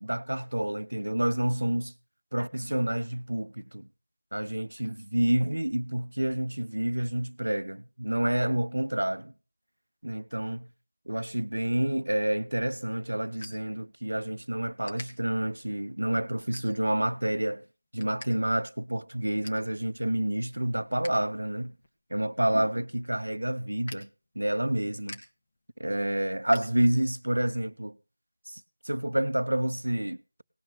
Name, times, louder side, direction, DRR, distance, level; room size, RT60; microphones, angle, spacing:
voice 1, 0.0-1.9 2.3-3.9 4.3-9.3 10.0-10.7 11.1-17.6 17.9-21.8 22.1-24.1 24.4-25.2 25.8-28.0 28.5-30.4, right 1 dB, 70° right, 0.8 m, -29 dB
sound 1, 12.5-14.3 14.8-15.1 15.6-15.9 16.5-17.1 17.5-18.3 18.6-18.7 19.0-19.7 20.1-21.2 21.5-27.3, left 2 dB, 30° left, 1.6 m, -48 dB
18.0 x 6.2 x 6.9 m
figure-of-eight pair, 170°, 0 cm